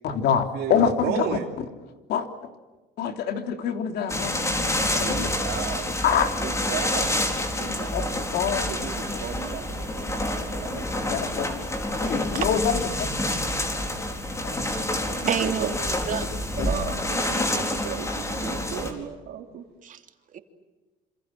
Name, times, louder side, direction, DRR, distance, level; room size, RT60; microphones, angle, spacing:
voice 1, 0.0-1.7 2.1-2.5 3.0-4.4 4.8-5.3 6.0-6.3 7.7-8.7 9.1-9.2 10.7-10.8 11.1-11.6 11.9-13.3 14.4-15.3 16.6-16.7, left 7 dB, 75° left, 6 dB, 3.4 m, -27 dB
voice 2, 1.0-1.5 5.0-5.8 6.4-7.1 7.6-8.2 8.7-10.8 15.2-15.7 16.6-19.6, right 9 dB, 75° right, -1 dB, 3.0 m, -34 dB
sound 1, 4.1-18.9, left 1 dB, 15° left, 4.7 m, -28 dB
voice 3, 15.3-16.3 16.6-16.7 19.8-20.0 20.3-20.4, right 7 dB, 50° right, 6 dB, 3.0 m, -29 dB
27.5 x 27.0 x 7.7 m, 1.2 s
cardioid pair, 110°, 17 cm